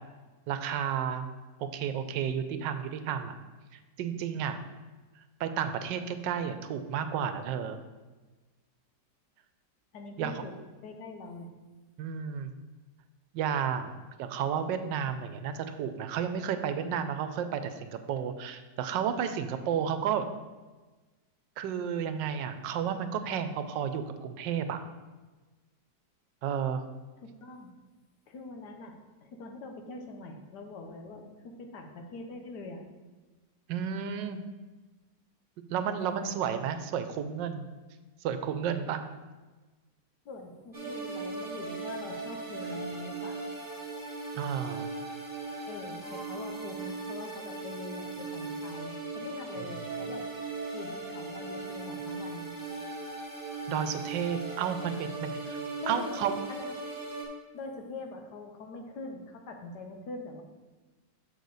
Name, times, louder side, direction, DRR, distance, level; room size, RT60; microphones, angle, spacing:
voice 1, 0.5-1.3 1.6-3.3 4.0-4.6 5.2-7.8 10.2-10.3 12.0-12.5 13.3-20.3 21.6-24.8 26.4-26.8 33.7-34.4 35.7-37.6 38.2-39.0 44.3-44.9 53.7-56.3, right 8 dB, 85° right, 9 dB, 1.3 m, -32 dB
voice 2, 9.9-10.6 10.8-11.5 27.2-27.7 28.3-32.8 36.0-36.3 40.2-43.4 45.7-50.3 50.7-52.5 55.8-56.2 56.5-56.7 57.5-60.4, left 3 dB, 70° left, 4 dB, 1.4 m, -43 dB
sound 1, 40.7-57.2, right 3 dB, 10° right, 1.4 m, -38 dB
6.5 x 6.5 x 4.0 m, 1.2 s
omnidirectional pair, 1.9 m